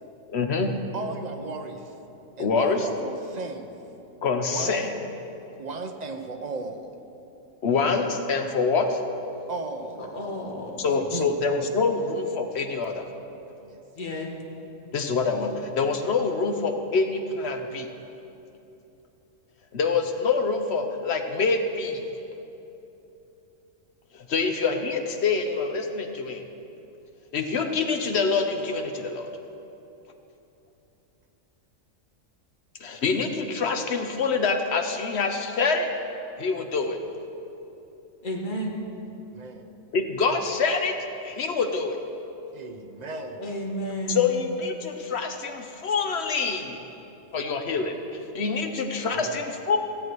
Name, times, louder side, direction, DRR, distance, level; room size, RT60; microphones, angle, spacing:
voice 1, 0.3-0.7 2.4-2.9 4.2-5.0 7.6-9.0 10.8-13.1 14.9-17.9 19.7-22.0 24.1-26.4 27.3-29.3 32.8-35.9 36.4-37.0 39.9-40.9 41.2-42.0 44.1-46.7 47.3-49.8, left 4 dB, 60° left, 5 dB, 1.0 m, -26 dB
voice 2, 0.9-1.9 2.4-3.7 4.5-4.8 5.6-6.9 9.5-10.3 10.8-11.4 13.6-13.8 39.2-39.7 42.5-43.5 49.1-49.4, right 3 dB, 40° right, 5 dB, 0.7 m, -35 dB
voice 3, 10.0-10.8 14.0-14.3 38.2-38.7 43.4-44.3, equal, 40° left, -1 dB, 1.5 m, -32 dB
15.5 x 8.3 x 4.7 m, 2.9 s
omnidirectional pair, 1.4 m